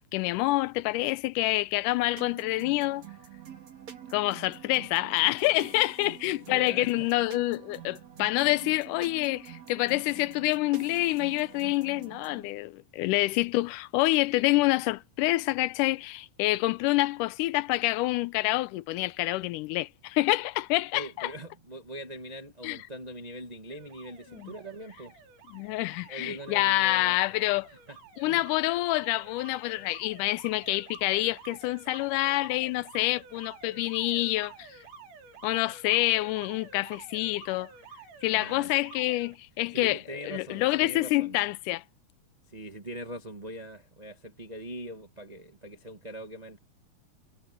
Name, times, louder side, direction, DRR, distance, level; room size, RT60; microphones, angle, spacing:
voice 1, 0.0-3.1 4.1-21.3 22.6-22.8 24.4-24.5 25.5-27.7 28.2-34.7 35.4-37.7 38.2-41.8, left 19 dB, 90° left, 2.2 m, -27 dB
sound 1, 2.2-12.5, right 10 dB, 55° right, 4.9 m, -47 dB
voice 2, 6.3-7.1 20.9-25.1 26.1-27.2 27.9-28.0 28.2-28.4 38.3-38.7 39.7-41.4 42.5-46.6, right 1 dB, 40° right, 0.5 m, -42 dB
Alarm, 23.7-39.4, right 5 dB, 80° right, 4.7 m, -50 dB
omnidirectional pair, 3.6 m